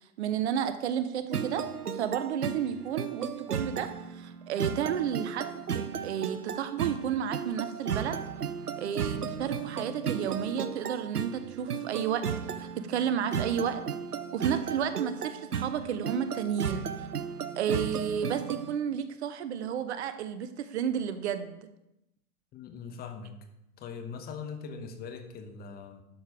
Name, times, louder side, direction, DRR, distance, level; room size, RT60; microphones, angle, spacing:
voice 1, 0.2-1.6 1.9-8.2 8.8-12.2 12.6-13.8 14.3-16.8 17.6-21.7, right 8 dB, 50° right, 11 dB, 0.9 m, -32 dB
sound 1, 1.3-18.8, right 7 dB, 85° right, 0.8 m, -35 dB
voice 2, 22.5-23.5 23.8-26.0, left 5 dB, 20° left, 6 dB, 1.1 m, -41 dB
11.5 x 6.6 x 5.0 m, 0.86 s
figure-of-eight pair, 115°, 45 cm